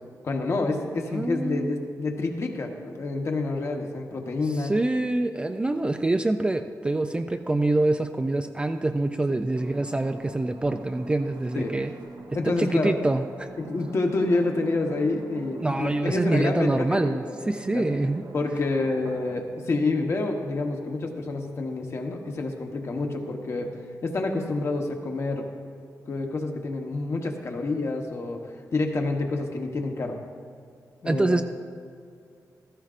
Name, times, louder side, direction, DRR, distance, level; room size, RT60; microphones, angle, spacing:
voice 1, 0.2-4.8 9.3-9.4 11.5-11.7 12.3-13.0 13.6-18.0 18.3-23.7 24.0-25.5 26.1-28.4 28.7-30.2 31.0-31.4, left 3 dB, 45° left, 2 dB, 1.1 m, -28 dB
voice 2, 1.0-1.8 4.6-11.9 12.4-13.5 15.6-18.3 31.1-31.4, right 2 dB, 15° right, 7 dB, 0.3 m, -25 dB
sound 1, 9.5-19.4, right 3 dB, 75° right, 1.0 m, -44 dB
14.5 x 14.0 x 2.5 m, 2.4 s
wide cardioid pair, 170°, 7 cm